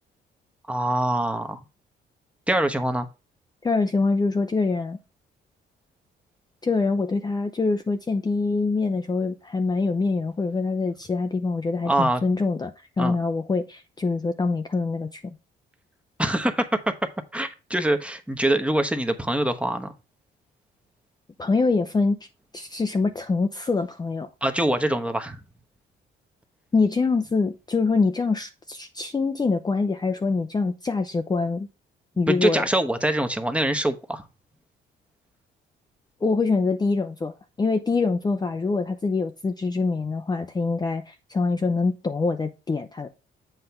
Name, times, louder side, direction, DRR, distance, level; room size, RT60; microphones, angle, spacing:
voice 1, 0.7-1.6 2.5-3.1 11.8-12.2 13.0-13.1 16.2-16.9 17.3-19.9 24.4-25.4 32.3-34.2, right 1 dB, 5° right, 1.0 m, -24 dB
voice 2, 3.6-5.0 6.6-15.4 21.4-22.2 22.5-24.3 26.7-31.7 32.2-32.7 36.2-43.1, left 4 dB, 20° left, 0.5 m, -24 dB
7.8 x 3.3 x 5.7 m
cardioid pair, 90°, 20 cm